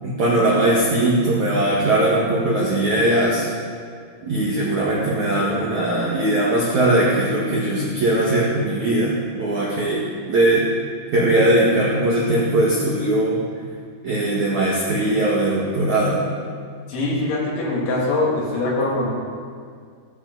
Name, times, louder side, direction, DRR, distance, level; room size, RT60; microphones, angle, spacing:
voice 1, 0.0-3.5 4.2-10.6 11.1-13.4 14.0-16.2, right 1 dB, 50° right, -5 dB, 2.5 m, -20 dB
voice 2, 16.9-19.1, left 2 dB, 70° left, -4 dB, 5.1 m, -22 dB
16.5 x 16.0 x 4.1 m, 2.1 s
omnidirectional pair, 5.5 m